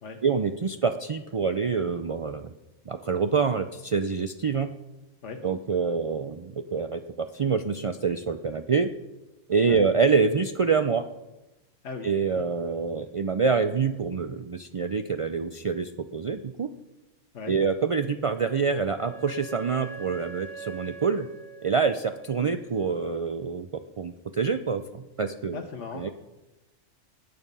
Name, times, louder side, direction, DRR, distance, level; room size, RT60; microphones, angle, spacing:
voice 1, 0.2-2.5 2.9-4.7 5.4-8.9 9.5-11.1 12.0-16.7 17.5-21.3 21.6-23.7 24.0-25.6 25.9-26.1, right 5 dB, 60° right, 8 dB, 0.3 m, -26 dB
voice 2, 11.8-12.5 17.3-17.6 25.5-26.1, left 5 dB, 70° left, 2 dB, 1.4 m, -38 dB
Wind instrument woodwind instrument, 18.2-22.9, right 6 dB, 30° right, 1.1 m, -44 dB
18.0 x 9.4 x 5.5 m, 1.0 s
omnidirectional pair, 1.3 m